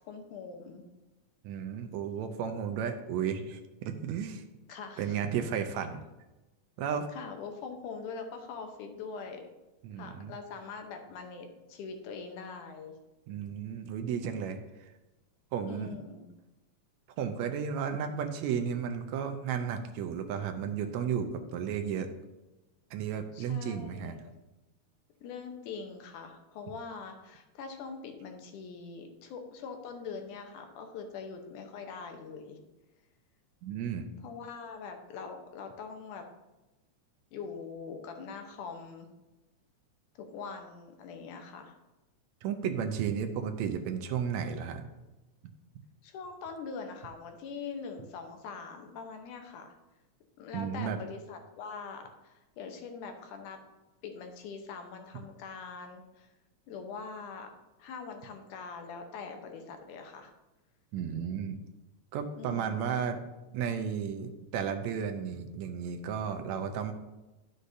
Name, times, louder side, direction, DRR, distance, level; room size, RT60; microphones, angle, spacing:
voice 1, 0.1-0.8 4.7-5.2 7.1-9.4 10.0-12.9 15.7-16.3 23.3-24.3 25.2-32.6 34.2-36.3 37.3-39.1 40.2-41.8 46.0-49.7 50.4-53.6 54.0-56.3 56.7-57.5 57.8-60.3 62.4-62.9, left 5 dB, 90° left, 5 dB, 2.4 m, -43 dB
voice 2, 1.4-4.4 5.0-6.0 6.8-7.1 9.8-10.3 13.3-14.6 15.5-15.9 17.2-22.1 22.9-24.1 33.6-34.1 42.4-44.8 50.5-51.0 60.9-61.6 62.1-63.2 63.5-66.9, right 7 dB, 75° right, 6 dB, 1.8 m, -33 dB
11.5 x 6.5 x 2.7 m, 1.0 s
omnidirectional pair, 3.4 m